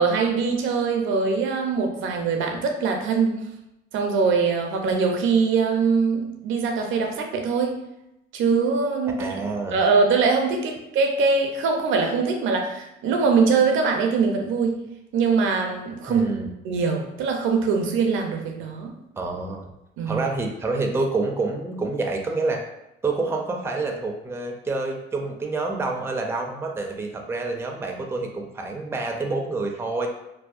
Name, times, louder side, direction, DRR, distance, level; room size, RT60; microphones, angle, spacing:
voice 1, 0.0-3.5 3.9-7.8 8.3-14.8 15.1-16.3 16.6-18.9 20.0-20.2, right 5 dB, 80° right, 3 dB, 0.5 m, -22 dB
voice 2, 9.2-9.8 16.1-16.5 19.2-19.7 20.1-22.6 23.0-30.1, right 3 dB, 10° right, 2 dB, 0.4 m, -27 dB
2.6 x 2.0 x 2.3 m, 0.88 s
cardioid pair, 90°, 20 cm